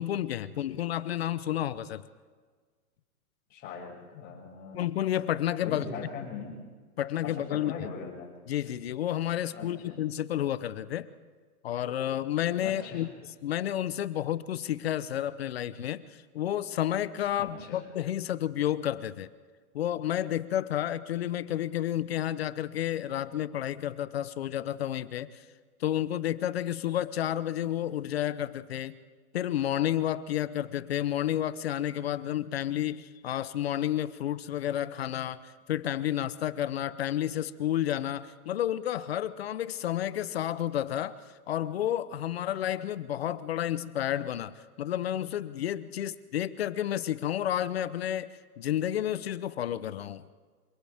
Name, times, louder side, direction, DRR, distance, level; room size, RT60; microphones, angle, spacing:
voice 1, 0.0-2.0 4.7-5.9 7.0-7.7 8.5-11.1 11.6-13.1 13.4-16.0 16.3-19.3 19.7-25.4 25.8-29.0 29.3-41.2 41.5-50.2, left 11 dB, 40° left, 15 dB, 0.9 m, -31 dB
voice 2, 3.5-4.8 5.6-6.6 7.2-8.3 9.5-10.0 12.6-13.1 17.4-17.8, left 6 dB, 20° left, -2 dB, 6.7 m, -40 dB
27.5 x 27.0 x 3.6 m, 1.5 s
hypercardioid pair, 150°, 46 cm